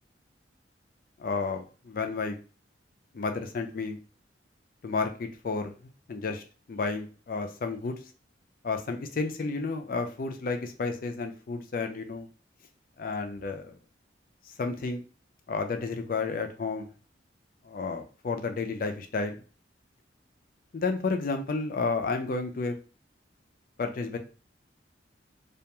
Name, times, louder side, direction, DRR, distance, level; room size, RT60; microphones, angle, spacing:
voice 1, 1.2-2.4 3.1-4.0 4.8-5.7 6.1-6.4 6.7-8.0 8.6-12.3 13.0-13.8 14.6-15.0 15.5-16.9 17.6-19.4 20.7-22.8 23.8-24.2, left 4 dB, 50° left, 5 dB, 0.4 m, -31 dB
2.4 x 2.2 x 2.9 m, 0.37 s
head